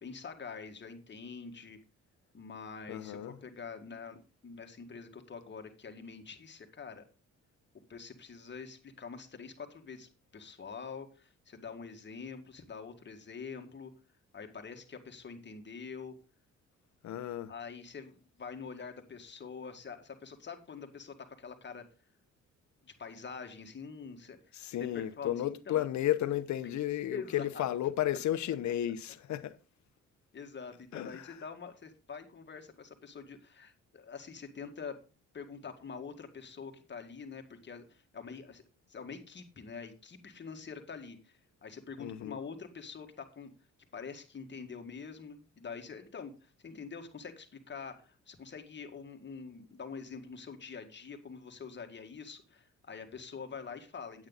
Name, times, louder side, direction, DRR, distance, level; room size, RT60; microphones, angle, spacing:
voice 1, 0.0-1.8 2.3-4.2 4.4-7.0 7.9-13.9 14.3-16.2 17.5-21.9 22.8-24.4 24.8-25.8 27.1-27.7 28.1-28.2 30.3-35.0 35.3-38.6 38.9-43.5 43.9-54.3, left 5 dB, 35° left, 1.9 m, -45 dB
voice 2, 2.9-3.4 17.0-17.5 24.5-29.5 30.9-31.4 42.0-42.4, left 12 dB, 70° left, 0.9 m, -33 dB
8.9 x 8.7 x 4.0 m
cardioid pair, 90°, 30 cm